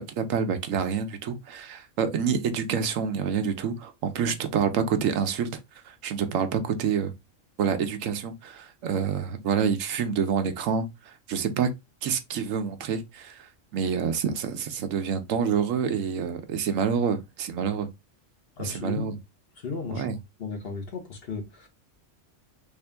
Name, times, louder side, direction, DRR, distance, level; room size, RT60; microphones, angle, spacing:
voice 1, 0.0-5.5 5.8-7.1 7.6-11.7 12.0-13.5 13.7-17.9 18.6-19.1 19.9-20.2, right 6 dB, 75° right, 1.0 m, -27 dB
voice 2, 18.6-19.1 19.6-20.1 20.4-21.7, left 4 dB, 50° left, 1.1 m, -34 dB
3.6 x 2.5 x 3.3 m
omnidirectional pair, 1.4 m